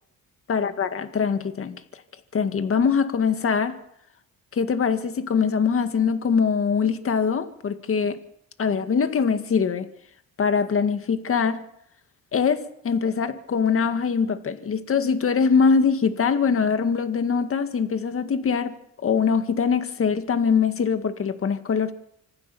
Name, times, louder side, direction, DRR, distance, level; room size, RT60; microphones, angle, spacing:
voice 1, 0.5-1.8 2.3-3.8 4.5-8.2 8.6-9.9 10.4-11.6 12.3-18.7 19.0-21.9, left 6 dB, 45° left, 9 dB, 2.0 m, -23 dB
26.0 x 16.0 x 7.0 m, 0.76 s
cardioid pair, 90°, 30 cm